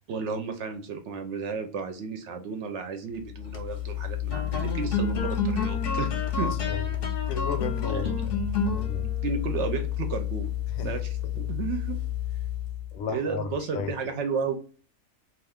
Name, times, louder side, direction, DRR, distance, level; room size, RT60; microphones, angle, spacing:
voice 1, 0.1-6.5 7.9-8.1 9.0-10.5 10.8-12.0 13.1-14.5, right 5 dB, 65° right, 0.8 m, -33 dB
sound 1, 3.3-12.9, left 7 dB, 55° left, 0.7 m, -29 dB
voice 2, 6.4-6.8 7.3-9.1 10.8-10.9 11.4-11.5 12.9-14.0, left 4 dB, 90° left, 1.1 m, -34 dB
2.4 x 2.4 x 3.4 m
omnidirectional pair, 1.5 m